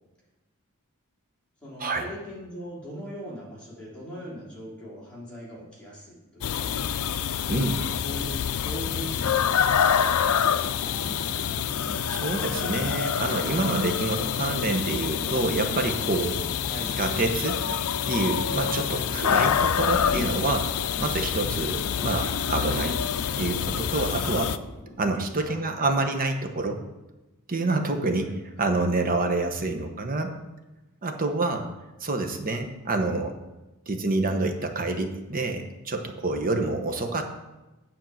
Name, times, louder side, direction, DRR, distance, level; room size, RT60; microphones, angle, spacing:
voice 1, 1.6-7.0 8.0-10.9 14.1-14.3 16.7-16.9 19.1-19.2 21.9-22.1 25.3-25.9 28.2-28.3, equal, 5° left, -7 dB, 3.2 m, -41 dB
sound 1, 6.4-24.6, left 8 dB, 70° left, 0.4 m, -27 dB
voice 2, 7.5-7.8 12.1-16.4 17.0-17.6 18.1-20.7 21.0-23.0 23.4-24.5 25.0-26.8 27.5-28.3 28.6-30.3 31.0-31.7 32.0-33.3 33.9-37.3, right 2 dB, 40° right, 5 dB, 1.0 m, -27 dB
sound 2, 10.2-25.5, equal, 30° left, 1.6 m, -43 dB
9.3 x 4.5 x 7.6 m, 1.1 s
head